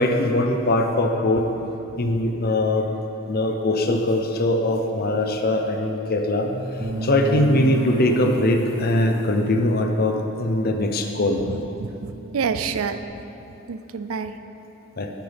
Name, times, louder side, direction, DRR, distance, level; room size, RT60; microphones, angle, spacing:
voice 1, 0.0-1.5 2.0-2.9 3.3-6.5 7.0-11.4 15.0-15.1, left 1 dB, 45° left, 4 dB, 0.7 m, -21 dB
sound 1, 6.4-12.2, left 1 dB, 75° left, 1.4 m, -38 dB
Bass guitar, 6.8-13.1, right 3 dB, 35° right, 0.7 m, -34 dB
voice 2, 11.5-13.0 13.7-14.3, right 6 dB, 70° right, 10 dB, 0.5 m, -28 dB
12.0 x 9.2 x 3.5 m, 3.0 s
head